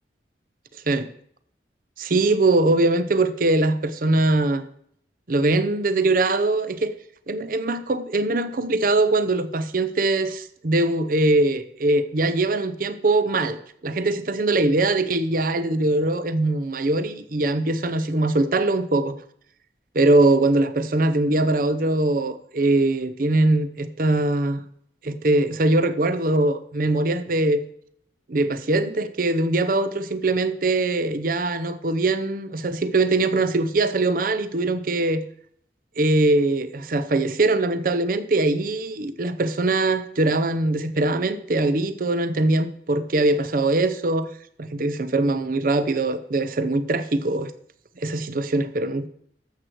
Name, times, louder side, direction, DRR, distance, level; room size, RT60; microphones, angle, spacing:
voice 1, 2.0-4.6 5.3-6.9 7.3-13.6 13.8-19.2 19.9-24.6 25.0-27.6 28.3-35.2 36.0-44.3 44.6-47.5 48.0-49.1, right 2 dB, 50° right, 12 dB, 0.7 m, -22 dB
12.5 x 7.8 x 4.6 m, 0.64 s
head